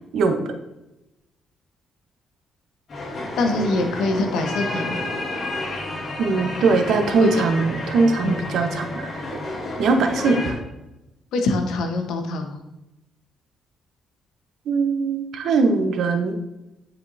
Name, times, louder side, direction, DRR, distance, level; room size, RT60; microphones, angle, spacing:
voice 1, 0.1-0.4 6.2-9.2 9.8-10.6 14.7-16.4, right 4 dB, 70° right, 5 dB, 0.8 m, -21 dB
sound 1, 2.9-10.5, left 1 dB, 45° left, 2.4 m, -30 dB
voice 2, 3.4-5.0 7.2-7.5 8.2-8.4 11.3-12.6, left 2 dB, 80° left, 5 dB, 1.0 m, -24 dB
9.8 x 4.5 x 2.7 m, 0.93 s
cardioid pair, 90°, 0 cm